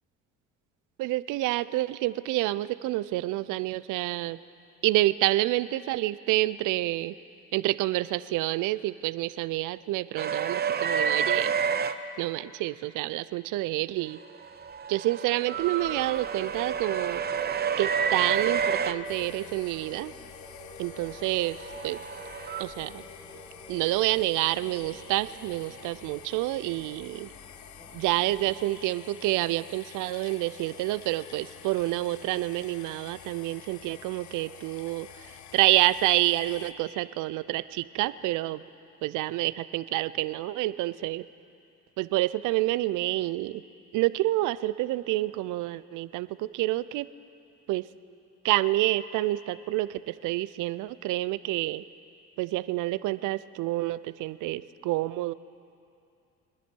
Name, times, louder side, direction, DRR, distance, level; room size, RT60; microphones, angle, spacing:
voice 1, 1.0-4.4 4.8-7.1 7.5-11.5 12.2-14.2 14.9-17.2 17.8-20.1 20.8-21.6 21.8-22.0 22.6-23.0 23.7-27.3 27.9-35.1 35.5-38.6 39.0-41.2 42.0-43.6 43.9-47.1 47.7-47.9 48.4-51.8 52.4-55.3, right 17 dB, 70° right, 16 dB, 0.5 m, -28 dB
sound 1, 10.2-11.9 14.3-18.9 21.3-22.6, right 7 dB, 30° right, 0.6 m, -29 dB
sound 2, 15.5-28.5, left 1 dB, 15° left, 1.9 m, -48 dB
sound 3, 19.0-36.7, left 9 dB, 60° left, 0.9 m, -48 dB
25.5 x 10.0 x 4.5 m, 2.5 s
supercardioid pair, 80°, 32 cm